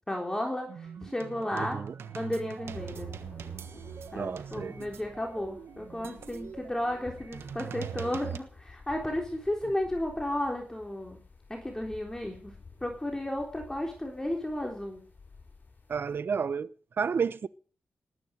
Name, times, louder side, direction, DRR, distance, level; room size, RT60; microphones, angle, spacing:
voice 1, 0.1-1.8 2.1-3.1 4.1-11.2 11.5-12.5 12.8-15.0, left 1 dB, 15° left, 3.7 m, -33 dB
sound 1, 0.7-8.4, right 8 dB, 85° right, 1.2 m, -42 dB
voice 2, 1.5-1.9 4.1-4.7 15.9-16.7 17.0-17.5, right 6 dB, 65° right, 0.8 m, -31 dB
sound 2, 2.6-16.2, left 4 dB, 50° left, 7.2 m, -53 dB
19.5 x 10.0 x 6.5 m
cardioid pair, 70°, 4 cm